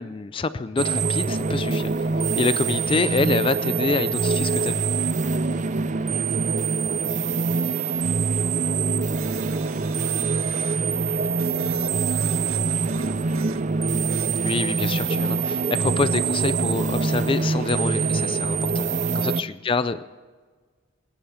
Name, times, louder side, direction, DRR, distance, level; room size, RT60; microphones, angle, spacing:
voice 1, 0.0-2.1 2.4-4.8 14.4-20.1, left 3 dB, 25° left, 14 dB, 0.4 m, -26 dB
sound 1, 0.8-19.4, right 4 dB, 35° right, 0.4 m, -24 dB
voice 2, 5.3-13.4, right 1 dB, 50° right, 3 dB, 2.3 m, -48 dB
sound 2, 9.1-10.8 11.4-13.7 14.1-14.6, right 6 dB, 85° right, 0.7 m, -40 dB
19.5 x 10.5 x 7.2 m, 1.5 s
head